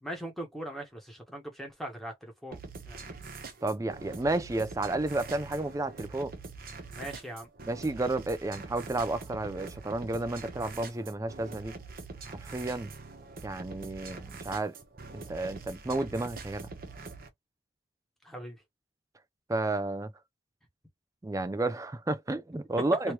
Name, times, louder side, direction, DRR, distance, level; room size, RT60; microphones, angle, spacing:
voice 1, 0.0-2.6 2.8-3.1 6.9-7.5 18.2-18.6, right 1 dB, ahead, 1.1 m, -40 dB
sound 1, 2.5-17.3, right 4 dB, 45° right, 0.9 m, -44 dB
voice 2, 3.6-6.3 7.7-11.8 12.3-12.9 13.4-14.7 15.1-16.7 19.5-20.1 21.2-23.1, right 2 dB, 15° right, 0.3 m, -31 dB
3.0 x 2.8 x 2.9 m
head